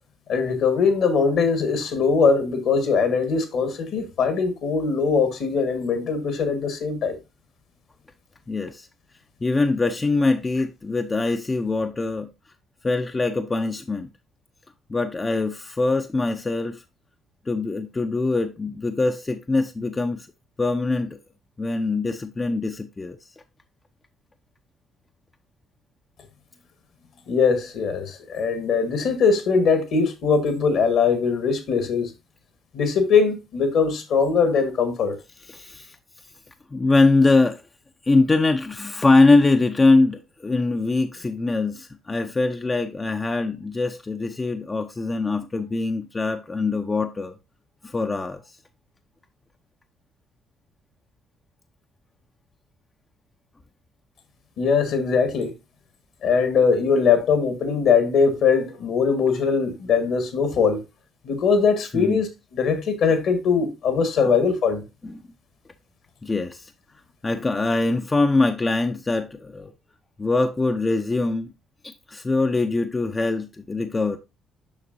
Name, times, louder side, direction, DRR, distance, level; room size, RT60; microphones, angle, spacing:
voice 1, 0.3-7.2 27.3-32.1 32.7-35.2 54.6-55.5 56.2-60.8 61.2-64.8, left 5 dB, 65° left, 1.5 m, -21 dB
voice 2, 8.5-8.9 9.4-12.3 12.8-14.1 14.9-16.8 17.5-20.3 20.6-21.2 21.6-23.2 35.4-36.0 36.7-37.6 38.0-47.4 47.8-48.4 59.3-59.4 61.9-62.2 65.0-65.2 66.2-66.7 67.2-69.7 70.2-71.5 71.8-74.2, left 3 dB, 25° left, 0.6 m, -23 dB
7.1 x 5.9 x 2.6 m
hypercardioid pair, 50°, 0 cm